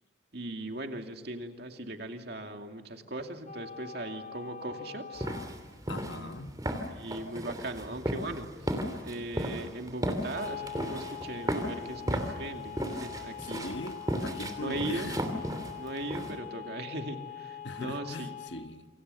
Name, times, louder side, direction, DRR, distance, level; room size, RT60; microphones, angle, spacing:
voice 1, 0.3-5.3 6.1-6.3 6.9-13.7 14.6-15.1 15.8-18.4, right 1 dB, 55° right, 2.6 m, -39 dB
sound 1, 3.5-5.5 10.3-18.5, left 8 dB, 40° left, 4.0 m, -43 dB
sound 2, 5.2-16.4, equal, 20° right, 3.1 m, -35 dB
voice 2, 5.9-6.5 13.5-15.2 17.6-18.9, left 2 dB, 70° left, 1.5 m, -40 dB
28.5 x 25.5 x 7.0 m
head